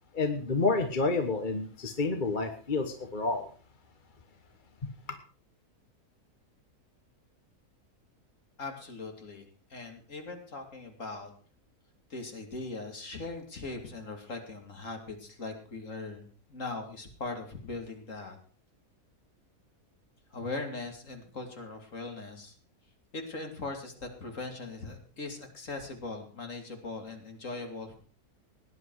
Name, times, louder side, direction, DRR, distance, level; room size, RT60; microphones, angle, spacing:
voice 1, 0.1-3.5 4.8-4.9, left 3 dB, 35° left, 7 dB, 1.3 m, -29 dB
voice 2, 8.6-11.3 12.1-18.4 20.3-22.6 23.1-28.0, left 3 dB, 55° left, 4 dB, 3.1 m, -40 dB
18.0 x 10.5 x 4.8 m, 0.40 s
omnidirectional pair, 1.7 m